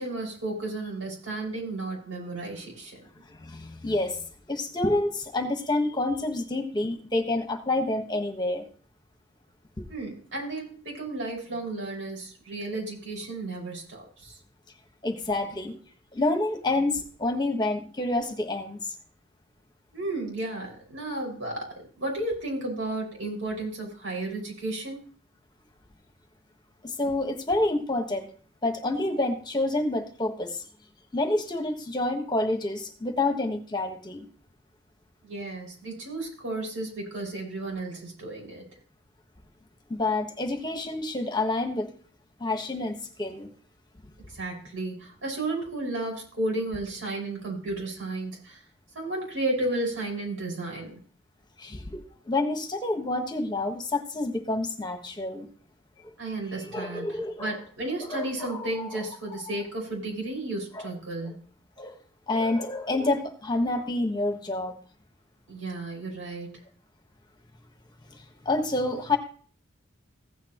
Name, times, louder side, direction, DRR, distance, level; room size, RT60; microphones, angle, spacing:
voice 1, 0.0-3.0 9.9-14.4 19.9-21.7 22.0-25.0 35.2-38.7 44.3-48.6 48.9-51.0 56.2-57.1 57.4-61.4 65.5-66.6, right 2 dB, 80° right, -1 dB, 5.6 m, -33 dB
voice 2, 3.4-8.6 9.8-9.9 15.0-15.7 16.1-18.8 26.8-28.3 28.6-30.6 31.1-34.2 39.9-41.9 42.4-43.5 51.6-55.4 56.7-57.5 58.0-58.7 60.7-60.8 61.2-61.4 61.8-61.9 62.3-64.7 68.4-69.2, left 2 dB, 20° left, 5 dB, 1.3 m, -28 dB
15.5 x 8.8 x 3.0 m, 0.43 s
head